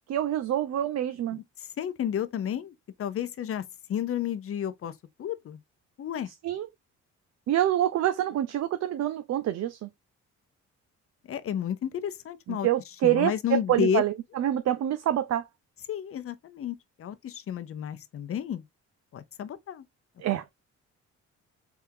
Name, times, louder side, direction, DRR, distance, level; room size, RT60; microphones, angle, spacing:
voice 1, 0.1-1.4 6.4-6.7 7.5-9.9 12.5-15.5 20.2-20.4, right 12 dB, 60° right, 0.5 m, -26 dB
voice 2, 1.3-2.7 3.0-4.9 5.2-5.6 6.0-6.3 11.3-12.7 13.0-14.0 15.9-18.6 19.1-19.8, left 9 dB, 50° left, 0.6 m, -31 dB
3.6 x 3.5 x 2.7 m
cardioid pair, 90°, 30 cm